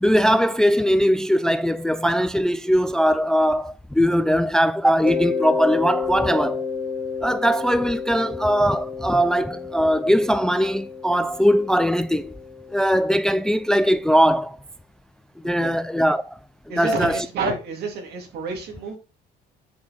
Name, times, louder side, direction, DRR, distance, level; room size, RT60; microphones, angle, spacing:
voice 1, 0.0-6.6 7.2-12.3 12.7-14.6 15.4-16.4 16.8-17.3, equal, 5° left, 0.3 m, -20 dB
Mallet percussion, 5.0-13.6, left 5 dB, 30° right, 1.4 m, -31 dB
voice 2, 15.4-15.8 16.7-19.0, right 3 dB, 75° right, 2.4 m, -29 dB
8.5 x 4.4 x 4.2 m
cardioid pair, 110°, 17 cm